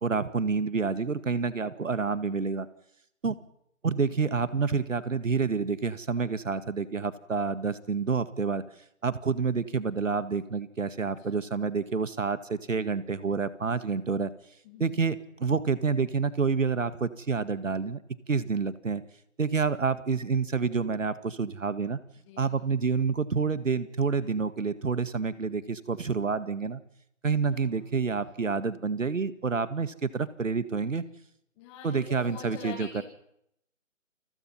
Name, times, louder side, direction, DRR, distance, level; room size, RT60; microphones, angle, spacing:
voice 1, 0.0-2.7 3.2-3.4 3.8-8.6 9.0-14.3 14.8-18.0 18.3-19.0 19.4-22.0 22.4-26.8 27.2-31.0 31.8-33.0, right 5 dB, 75° right, 13 dB, 2.0 m, -28 dB
voice 2, 14.6-15.1 22.2-22.6 27.4-27.9 31.6-33.0, left 7 dB, 20° left, -5 dB, 6.0 m, -45 dB
29.0 x 21.0 x 5.7 m, 0.75 s
figure-of-eight pair, 150°, 39 cm